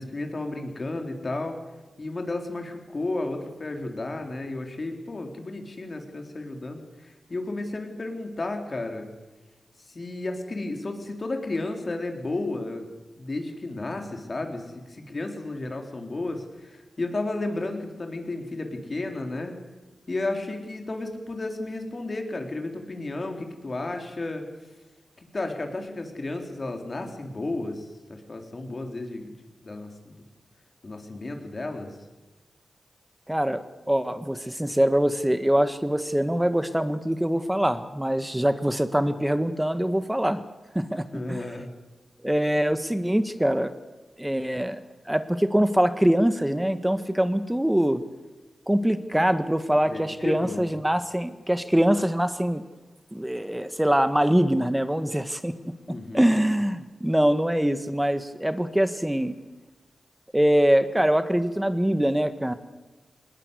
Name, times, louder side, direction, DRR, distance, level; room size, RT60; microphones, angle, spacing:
voice 1, 0.0-1.6 2.0-9.1 9.9-12.9 13.2-19.5 20.1-24.5 25.2-29.3 29.6-30.3 30.8-32.0 41.1-41.7 49.8-50.6 55.9-56.3, left 2 dB, 50° left, 4 dB, 3.9 m, -33 dB
voice 2, 33.3-40.4 40.7-41.4 42.2-43.7 44.2-48.0 48.7-52.6 53.1-55.7 56.1-59.4 60.3-62.5, equal, 10° right, 11 dB, 1.5 m, -23 dB
20.5 x 19.5 x 8.3 m, 1.1 s
cardioid pair, 45°, 0 cm